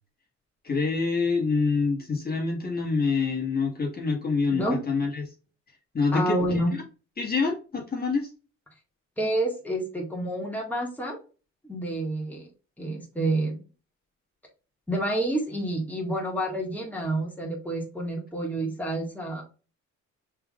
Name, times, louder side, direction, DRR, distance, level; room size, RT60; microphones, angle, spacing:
voice 1, 0.6-5.3 5.9-6.6 7.2-8.3, left 4 dB, 30° left, -2 dB, 1.7 m, -26 dB
voice 2, 4.5-4.8 6.1-6.7 9.2-11.2 11.6-12.5 12.8-13.6 14.9-19.4, right 1 dB, 5° left, -1 dB, 1.9 m, -28 dB
5.6 x 3.7 x 2.4 m, 0.34 s
cardioid pair, 90°, 30 cm